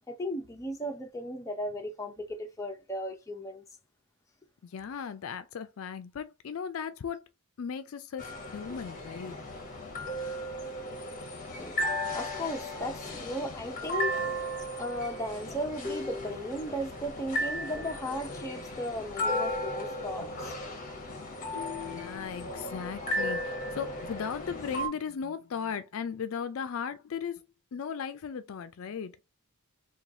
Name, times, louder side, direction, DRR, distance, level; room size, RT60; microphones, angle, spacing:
voice 1, 0.1-3.6 11.5-20.6 21.5-21.6, equal, 15° left, 0.6 m, -36 dB
voice 2, 4.6-7.3 7.6-9.3 20.2-20.3 21.8-27.5 27.7-29.2, left 7 dB, 60° left, 0.4 m, -37 dB
sound 1, 8.2-24.9, equal, 35° left, 0.9 m, -35 dB
3.1 x 2.3 x 3.8 m
head